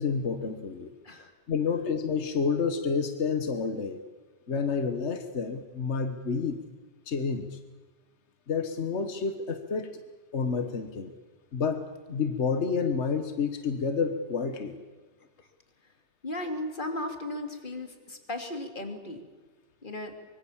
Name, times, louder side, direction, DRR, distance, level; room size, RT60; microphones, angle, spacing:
voice 1, 0.0-0.9 1.5-4.0 4.5-6.6 7.1-7.6 8.5-10.0 10.3-11.1 11.5-11.8 12.1-14.8, left 5 dB, 65° left, 8 dB, 1.6 m, -29 dB
voice 2, 16.2-19.2 19.8-20.2, left 1 dB, 40° left, 5 dB, 2.9 m, -36 dB
24.5 x 24.0 x 7.3 m, 1.3 s
omnidirectional pair, 1.3 m